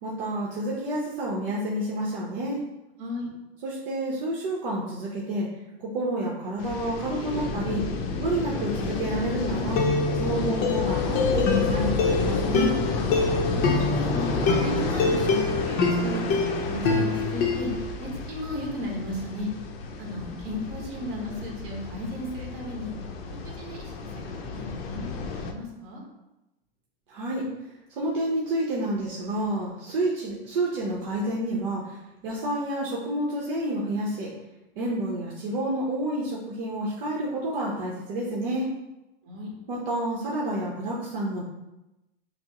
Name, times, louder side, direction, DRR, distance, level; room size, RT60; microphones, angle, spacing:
voice 1, 0.0-2.6 3.6-5.5 5.8-7.8 8.2-9.9 10.1-12.7 27.1-27.4 28.0-34.3 34.8-38.7 39.7-41.4, right 1 dB, 65° right, -4 dB, 0.9 m, -29 dB
voice 2, 3.0-3.3 13.4-14.3 14.6-19.5 20.0-22.9 23.4-26.0 39.2-39.5, left 1 dB, 45° right, -1 dB, 1.3 m, -35 dB
sound 1, 6.6-25.5, left 4 dB, 80° left, 0.6 m, -31 dB
sound 2, 8.9-9.1 9.8-17.8, left 3 dB, 30° left, 0.6 m, -26 dB
6.0 x 2.0 x 2.9 m, 0.97 s
supercardioid pair, 135°, 30 cm